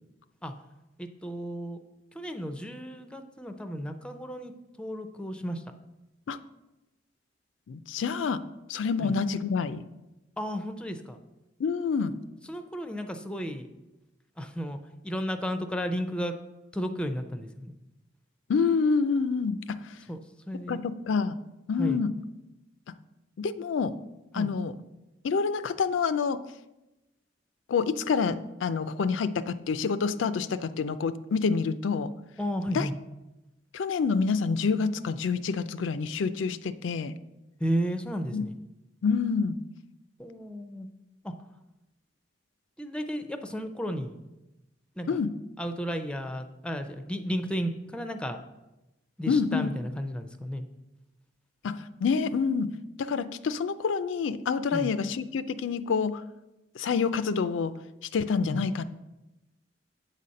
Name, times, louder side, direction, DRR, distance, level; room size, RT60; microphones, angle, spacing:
voice 1, 1.0-1.8 2.1-5.6 9.0-9.1 10.4-11.2 12.4-13.7 14.4-16.4 16.7-17.7 20.1-20.2 20.5-20.8 21.8-22.0 24.3-24.5 32.4-32.9 37.6-38.6 40.2-40.9 41.2-41.3 42.8-44.2 45.0-45.1 45.6-48.4 49.2-50.7 54.7-54.9 58.4-58.6, equal, 5° left, 7 dB, 0.4 m, -33 dB
voice 2, 7.7-8.4 8.7-9.9 11.6-12.2 18.5-19.9 20.7-21.4 21.7-22.1 23.4-23.9 24.3-24.7 25.2-26.4 27.7-32.1 32.7-32.9 33.7-37.1 38.3-38.4 39.0-39.6 45.1-45.3 49.3-49.7 51.6-52.7 53.0-56.2 56.8-57.7 58.1-58.8, left 5 dB, 85° left, 13 dB, 0.4 m, -27 dB
8.1 x 4.1 x 6.4 m, 0.99 s
head